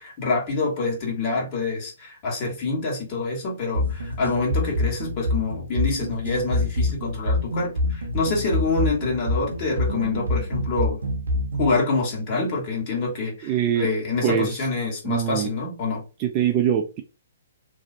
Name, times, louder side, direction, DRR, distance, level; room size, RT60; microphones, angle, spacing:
voice 1, 0.0-11.0 11.6-16.0, left 3 dB, 40° left, 1.4 m, -26 dB
sound 1, 3.7-11.8, left 1 dB, 80° right, 0.6 m, -26 dB
voice 2, 13.4-13.9 14.2-14.5 15.0-15.5 16.2-17.0, right 9 dB, 35° right, 0.3 m, -23 dB
2.7 x 2.0 x 2.6 m
hypercardioid pair, 135°, 0 cm